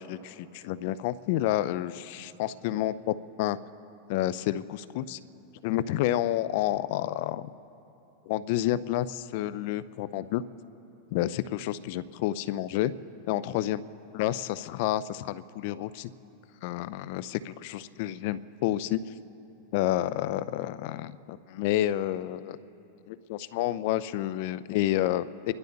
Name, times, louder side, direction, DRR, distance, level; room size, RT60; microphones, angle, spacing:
voice 1, 0.0-3.6 4.1-5.2 5.6-7.5 8.3-10.4 11.1-12.9 13.3-13.8 14.1-16.1 16.6-19.0 19.7-22.6 23.1-25.5, left 13 dB, 60° left, 16 dB, 0.5 m, -29 dB
29.5 x 12.0 x 4.0 m, 3.0 s
hypercardioid pair, 115°, 0 cm